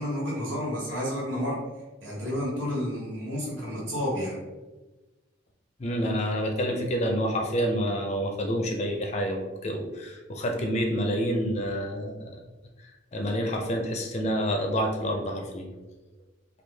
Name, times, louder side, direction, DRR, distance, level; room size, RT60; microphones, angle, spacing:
voice 1, 0.0-1.6 2.0-4.4, equal, 70° right, -6 dB, 1.4 m, -30 dB
voice 2, 5.8-12.3 13.1-15.7, equal, 35° left, 2 dB, 0.4 m, -28 dB
3.1 x 2.3 x 3.3 m, 1.1 s
head